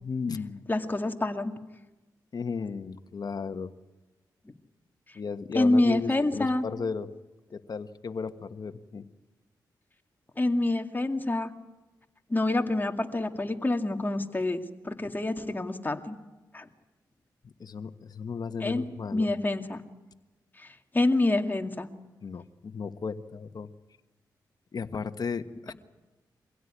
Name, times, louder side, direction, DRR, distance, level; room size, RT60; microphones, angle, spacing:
voice 1, 0.0-0.7 2.3-3.7 5.1-7.1 7.5-9.0 17.4-19.3 22.2-23.7 24.7-25.7, left 5 dB, 55° left, 9 dB, 1.4 m, -35 dB
voice 2, 0.7-1.5 5.5-6.7 10.4-11.5 12.3-16.2 16.5-16.6 18.6-18.8 19.1-19.8 20.6-20.7 20.9-21.9, left 2 dB, 25° left, 5 dB, 2.2 m, -27 dB
24.5 x 16.5 x 9.8 m, 1.1 s
cardioid pair, 65°, 8 cm